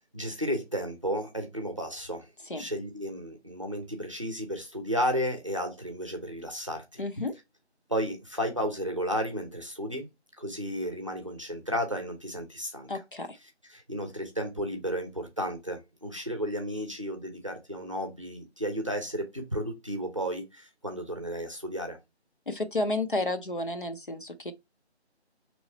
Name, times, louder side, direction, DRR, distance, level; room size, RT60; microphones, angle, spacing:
voice 1, 0.0-2.3 2.6-7.0 7.9-10.1 10.4-12.9 13.7-22.0, equal, 30° right, 0.7 m, -33 dB
voice 2, 7.0-7.3 12.9-13.4 22.5-24.5, left 2 dB, 50° left, 0.7 m, -31 dB
3.8 x 3.1 x 4.2 m
figure-of-eight pair, 165°, 34 cm